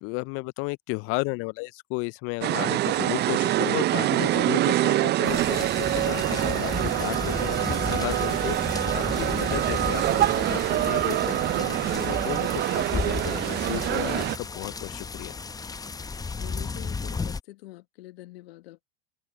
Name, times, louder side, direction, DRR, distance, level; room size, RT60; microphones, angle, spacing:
voice 1, 0.0-15.4, left 27 dB, 45° left, 0.4 m, -34 dB
sound 1, 2.4-14.4, right 15 dB, 35° right, 0.5 m, -25 dB
sound 2, 5.2-17.4, left 4 dB, 10° left, 0.7 m, -34 dB
voice 2, 16.4-18.8, left 17 dB, 70° left, 1.5 m, -45 dB
open air
hypercardioid pair, 85°, 31 cm